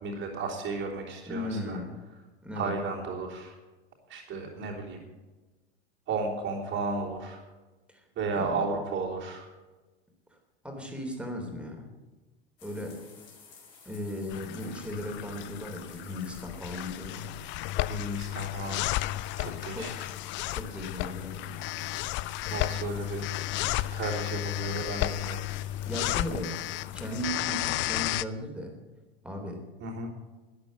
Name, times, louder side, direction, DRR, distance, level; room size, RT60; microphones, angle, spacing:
voice 1, 0.0-1.8 2.5-3.5 4.1-5.0 6.1-7.4 8.2-9.5 17.9-18.8 19.4-20.1 22.5-23.2 23.9-25.4 29.8-30.1, right 3 dB, 40° right, -7 dB, 3.5 m, -34 dB
voice 2, 1.3-1.9 2.4-2.7 7.9-8.0 8.4-8.7 10.3-10.4 10.6-11.9 12.6-13.0 13.9-17.4 19.7-20.0 20.5-21.7 25.8-26.6 26.9-28.8 29.2-29.7, left 1 dB, 5° right, 2 dB, 3.4 m, -37 dB
sound 1, 12.6-27.5, left 6 dB, 60° left, 5.2 m, -53 dB
sound 2, 14.3-28.2, left 15 dB, 40° left, 0.5 m, -33 dB
13.0 x 10.5 x 7.5 m, 1.2 s
figure-of-eight pair, 80°, 31 cm